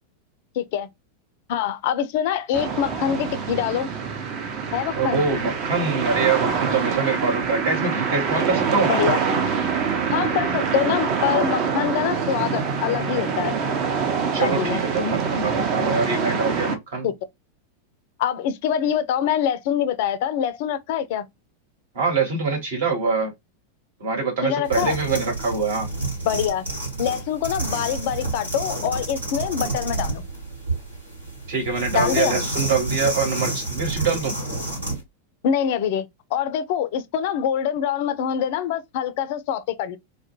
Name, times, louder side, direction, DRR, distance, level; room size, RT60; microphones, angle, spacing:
voice 1, 0.6-0.9 1.5-3.9 4.7-5.2 8.9-9.2 10.1-13.6 14.4-14.8 17.0-17.1 18.2-21.2 24.4-25.0 26.2-26.7 27.0-30.2 31.9-32.4 35.4-40.0, left 9 dB, 50° left, 0.3 m, -24 dB
sound 1, 2.5-16.8, right 5 dB, 40° right, 0.5 m, -25 dB
voice 2, 5.0-9.0 14.3-17.1 21.9-23.3 24.0-25.9 31.5-34.3, right 4 dB, 55° right, 1.2 m, -24 dB
Organ, 6.4-13.0, right 14 dB, 20° right, 0.9 m, -35 dB
sound 2, 24.6-35.0, right 2 dB, 80° right, 1.3 m, -29 dB
2.2 x 2.1 x 2.9 m
figure-of-eight pair, 90°, 0 cm